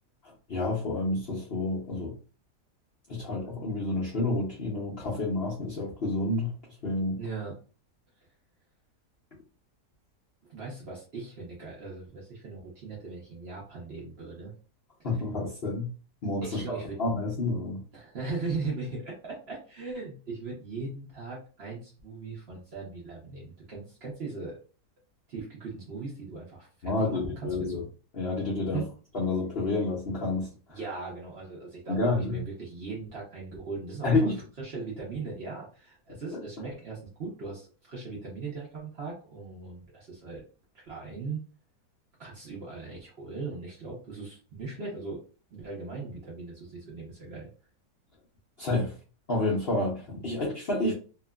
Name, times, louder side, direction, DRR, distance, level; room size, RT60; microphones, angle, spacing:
voice 1, 0.2-2.1 3.1-6.5 6.8-7.2 15.0-15.9 16.2-17.8 26.8-27.8 28.1-28.8 29.1-30.8 31.9-32.4 34.0-34.4 36.3-36.4 48.6-48.9 49.3-50.9, left 2 dB, 55° left, -6 dB, 0.7 m, -29 dB
voice 2, 7.1-7.5 10.5-14.5 16.4-17.0 17.9-24.6 25.3-27.8 28.7-28.9 30.7-34.1 34.6-40.4 40.7-41.4 42.2-45.2 45.5-47.5 50.8-50.9, right 4 dB, 50° right, -4 dB, 0.8 m, -39 dB
2.8 x 2.4 x 2.2 m, 0.37 s
omnidirectional pair, 1.8 m